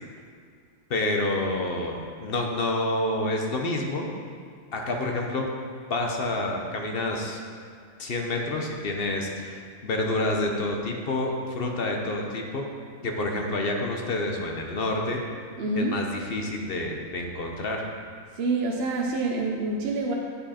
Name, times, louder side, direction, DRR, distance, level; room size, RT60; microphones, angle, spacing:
voice 1, 0.9-4.1 4.7-5.5 5.9-7.4 8.0-12.7 13.0-15.2 15.8-17.8, left 2 dB, 50° left, 1 dB, 1.0 m, -28 dB
voice 2, 15.6-15.9 18.3-20.1, right 3 dB, 55° right, 0 dB, 0.8 m, -27 dB
9.5 x 5.6 x 4.2 m, 2.1 s
omnidirectional pair, 1.4 m